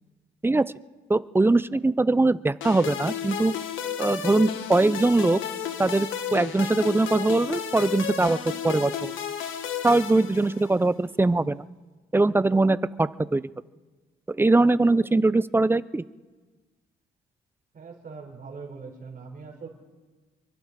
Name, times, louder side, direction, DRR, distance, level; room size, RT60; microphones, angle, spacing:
voice 1, 1.1-3.5 4.0-5.4 5.8-9.1 9.8-11.7 12.1-13.4 14.3-16.0, right 2 dB, 10° right, 17 dB, 0.5 m, -22 dB
sound 1, 2.6-10.9, left 8 dB, 80° left, 1.7 m, -33 dB
voice 2, 17.7-19.7, right 4 dB, 45° right, -2 dB, 4.1 m, -41 dB
27.0 x 23.5 x 4.1 m, 1.3 s
cardioid pair, 90°, 20 cm